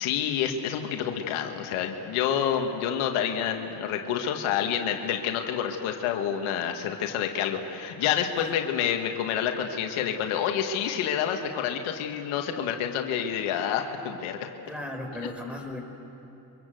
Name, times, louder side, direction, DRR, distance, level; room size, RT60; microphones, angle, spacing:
voice 1, 0.0-14.4, left 9 dB, 85° left, 4 dB, 1.9 m, -28 dB
voice 2, 14.7-15.8, left 1 dB, ahead, 3 dB, 5.2 m, -36 dB
29.5 x 25.0 x 7.9 m, 3.0 s
supercardioid pair, 80°, 47 cm